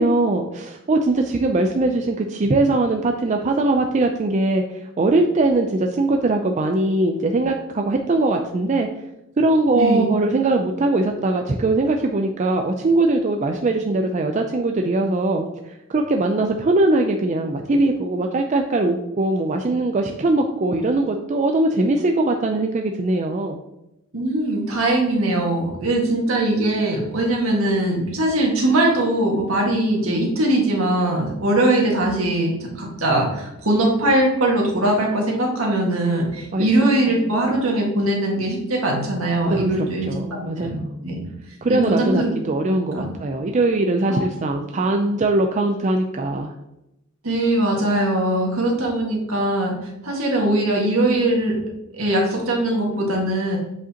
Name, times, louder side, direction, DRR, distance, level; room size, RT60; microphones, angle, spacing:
voice 1, 0.0-9.0 9.4-23.6 36.5-36.6 37.1-37.3 39.4-41.1 41.6-46.5, right 2 dB, 35° right, 3 dB, 0.4 m, -21 dB
voice 2, 9.7-10.1 24.1-40.7 41.0-41.2 41.7-42.3 42.9-43.0 44.1-44.2 47.2-49.7 50.0-51.5 51.9-53.6, right 1 dB, 70° right, -1 dB, 1.7 m, -21 dB
8.2 x 5.0 x 2.8 m, 0.89 s
head